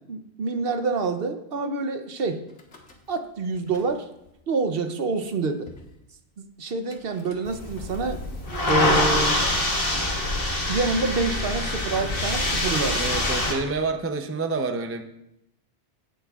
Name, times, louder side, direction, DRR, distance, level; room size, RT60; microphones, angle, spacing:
voice 1, 0.1-2.4 3.1-4.1 4.5-5.7 6.6-8.2 8.7-9.4 10.7-13.0, right 3 dB, 60° right, 8 dB, 0.9 m, -27 dB
Car / Engine starting / Idling, 2.5-3.3 3.5-4.3 5.0-5.1 5.2-5.3 5.7-5.9 6.9-13.1, equal, 80° left, 1.7 m, -42 dB
sound 1, 7.5-13.5, left 1 dB, 50° left, 1.9 m, -25 dB
voice 2, 12.9-15.0, right 3 dB, 20° right, 7 dB, 0.3 m, -28 dB
16.0 x 7.5 x 2.3 m, 0.83 s
omnidirectional pair, 1.2 m